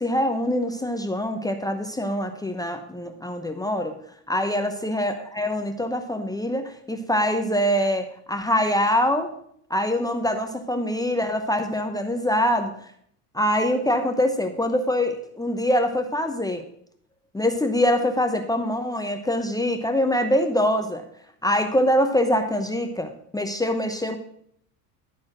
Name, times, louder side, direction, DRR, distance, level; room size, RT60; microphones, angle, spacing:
voice 1, 0.0-4.0 4.3-9.3 9.7-12.7 13.3-16.6 17.3-21.0 21.4-24.2, left 1 dB, 10° left, 5 dB, 0.8 m, -24 dB
11.5 x 4.2 x 6.1 m, 0.67 s
hypercardioid pair, 85°, 46 cm